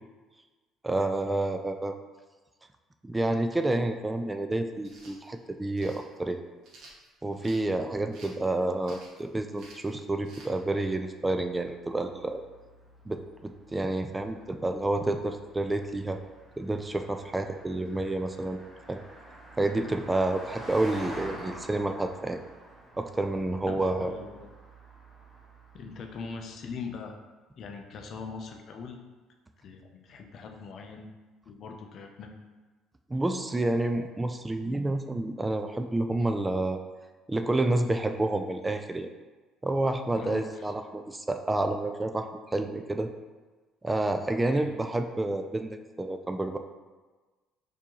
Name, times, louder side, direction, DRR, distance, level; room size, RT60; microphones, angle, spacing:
voice 1, 0.8-1.9 3.0-6.4 7.2-12.4 13.1-16.2 16.6-18.6 18.9-19.0 19.6-22.4 23.0-24.1 33.1-36.8 37.3-39.1 39.6-43.1 43.8-46.6, right 2 dB, 15° right, 6 dB, 0.3 m, -29 dB
sound 1, 4.8-5.2 5.8-6.0 6.6-7.6 8.1-8.4 8.8-9.2 9.5-9.9 10.2-10.5, right 2 dB, 60° right, 0.8 m, -51 dB
Car passing by, 10.8-26.4, right 1 dB, 35° right, 1.2 m, -48 dB
voice 2, 23.7-24.5 25.7-27.2 27.6-29.0 29.6-31.1 31.5-32.4 40.1-40.7 44.4-44.7, left 5 dB, 60° left, 3 dB, 0.5 m, -41 dB
4.3 x 2.7 x 2.9 m, 1.3 s
supercardioid pair, 65°, 0 cm